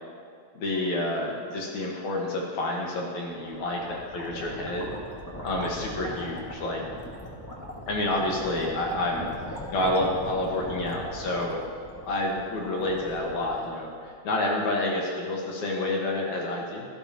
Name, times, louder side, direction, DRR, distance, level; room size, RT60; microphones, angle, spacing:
voice 1, 0.5-4.9 5.4-6.8 7.9-9.3 9.7-11.6 12.1-16.9, left 1 dB, 70° left, -2 dB, 2.8 m, -29 dB
sound 1, 3.2-14.2, equal, 20° left, 0.4 m, -39 dB
17.0 x 12.5 x 2.9 m, 2.3 s
omnidirectional pair, 3.4 m